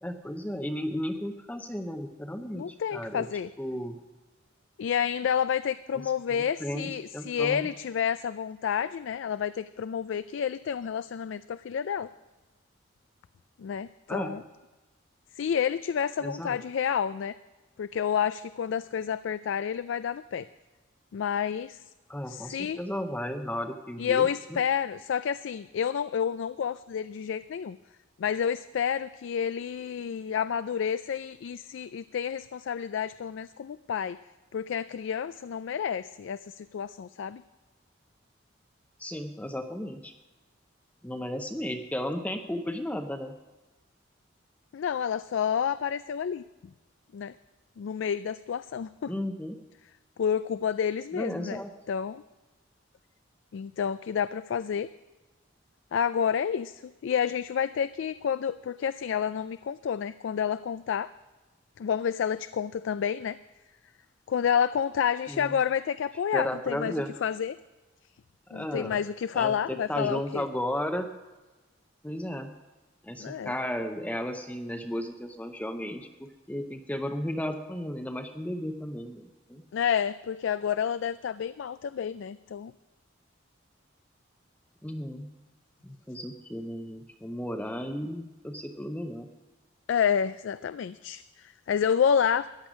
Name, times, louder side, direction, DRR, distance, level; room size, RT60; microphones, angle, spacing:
voice 1, 0.0-3.3 3.6-4.0 5.9-7.7 14.1-14.3 16.2-16.6 22.1-24.3 39.0-40.1 41.0-43.3 49.1-49.6 51.1-51.7 65.3-65.5 66.3-67.1 68.5-69.0 69.3-71.1 72.0-72.5 73.0-79.6 84.8-85.3 85.8-89.3, left 1 dB, 5° left, 5 dB, 0.6 m, -34 dB
voice 2, 2.5-3.5 4.8-12.1 13.6-14.4 15.4-17.4 17.8-20.5 21.1-21.8 22.3-22.8 24.0-27.8 28.2-34.2 34.5-37.4 44.7-46.4 47.1-47.3 47.8-49.1 50.2-51.6 51.9-52.2 53.5-54.9 55.9-61.1 61.8-63.4 64.3-67.6 68.5-70.4 73.2-73.5 79.7-82.7 89.9-92.5, left 7 dB, 75° left, 14 dB, 0.3 m, -29 dB
14.5 x 10.5 x 5.0 m, 1.2 s
head